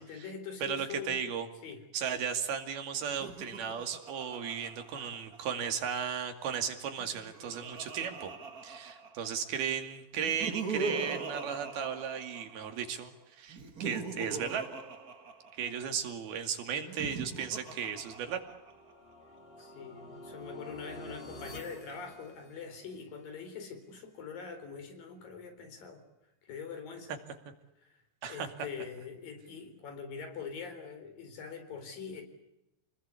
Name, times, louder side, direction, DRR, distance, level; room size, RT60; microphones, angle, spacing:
voice 1, 0.0-1.2 1.6-1.8 19.6-26.0 26.4-27.2 27.8-28.0 28.3-32.2, left 6 dB, 65° left, 7 dB, 5.7 m, -43 dB
voice 2, 0.6-1.5 1.9-8.3 8.6-14.6 15.5-18.4 28.2-28.5, right 7 dB, 90° right, 6 dB, 4.3 m, -35 dB
Laughter, 3.0-5.8 6.9-9.5 10.1-12.9 13.5-15.9 16.8-18.9, right 4 dB, 45° right, 1.2 m, -41 dB
sound 1, 17.8-23.0, left 1 dB, 20° left, 2.3 m, -50 dB
29.5 x 20.0 x 8.4 m, 0.89 s
omnidirectional pair, 4.2 m